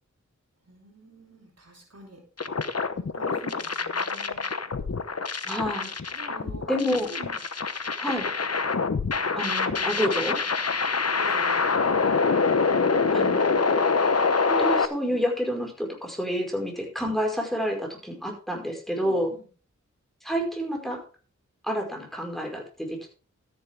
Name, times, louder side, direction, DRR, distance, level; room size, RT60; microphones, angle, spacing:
voice 1, 0.6-2.2 2.9-4.5 6.1-6.7 7.1-7.4 9.7-9.9 11.2-11.8 13.7-13.9 19.0-19.5, right 2 dB, 55° right, 0 dB, 3.9 m, -45 dB
sound 1, 2.4-14.9, left 4 dB, 55° left, 1.0 m, -25 dB
voice 2, 5.5-5.9 6.7-7.1 8.0-8.3 9.3-10.4 13.1-13.5 14.5-19.3 20.2-21.0 21.6-23.1, equal, ahead, 1 dB, 5.1 m, -29 dB
13.0 x 10.0 x 3.6 m, 0.36 s
wide cardioid pair, 60°, 30 cm